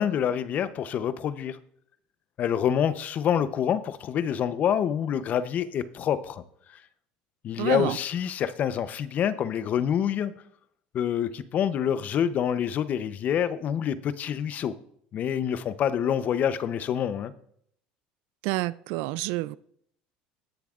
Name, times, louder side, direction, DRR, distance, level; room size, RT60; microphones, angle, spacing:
voice 1, 0.0-1.6 2.4-6.4 6.7-6.8 7.4-10.3 10.9-14.7 15.1-17.3, left 9 dB, 45° left, 0.7 m, -27 dB
voice 2, 7.6-7.9 18.4-19.6, right 19 dB, 75° right, 0.4 m, -28 dB
19.5 x 7.0 x 2.5 m
supercardioid pair, 105°, 4 cm